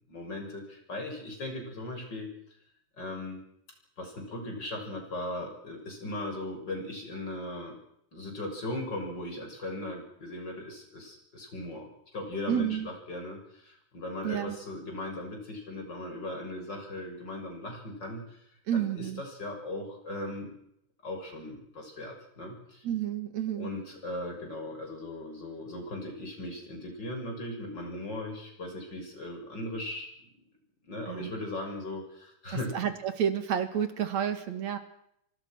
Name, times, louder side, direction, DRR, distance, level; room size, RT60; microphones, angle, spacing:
voice 1, 0.1-2.3 3.0-3.4 4.0-7.8 8.1-18.4 18.7-20.5 21.0-22.9 23.5-30.1 30.9-32.8, left 1 dB, 35° left, 3 dB, 7.3 m, -38 dB
voice 2, 12.5-12.9 14.2-14.6 18.7-19.2 22.8-23.7 31.1-31.3 32.7-34.8, right 9 dB, 70° right, 9 dB, 3.3 m, -30 dB
25.5 x 25.0 x 6.2 m, 0.75 s
omnidirectional pair, 3.3 m